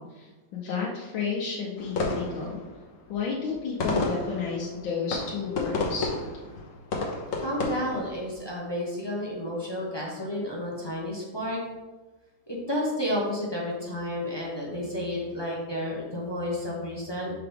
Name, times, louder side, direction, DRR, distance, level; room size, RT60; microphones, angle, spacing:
voice 1, 0.0-2.6 3.1-6.1, left 5 dB, 80° left, -3 dB, 1.6 m, -31 dB
sound 1, 1.8-8.5, left 2 dB, 50° left, 1.2 m, -32 dB
voice 2, 7.3-11.6 12.5-17.4, left 1 dB, 20° left, -4 dB, 0.7 m, -31 dB
5.8 x 4.8 x 3.5 m, 1.2 s
omnidirectional pair, 2.1 m